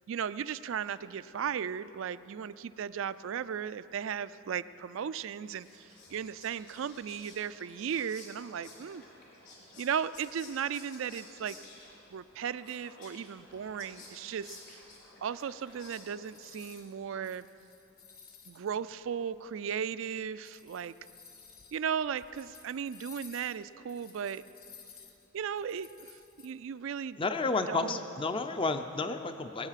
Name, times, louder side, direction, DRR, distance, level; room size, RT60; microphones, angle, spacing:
voice 1, 0.1-9.0 9.8-11.6 12.1-14.8 15.2-17.5 18.5-20.9 21.7-24.4 25.3-27.2 27.7-28.0, right 7 dB, 65° right, 15 dB, 0.3 m, -36 dB
Whispering, 5.2-17.1, left 3 dB, 60° left, 3.8 m, -53 dB
sound 1, 15.4-16.9 17.2-18.7 19.3-19.4 20.2-26.5, left 6 dB, 45° left, 1.2 m, -55 dB
voice 2, 27.2-29.7, left 3 dB, 25° left, 8 dB, 0.5 m, -31 dB
21.5 x 8.9 x 5.8 m, 3.0 s
head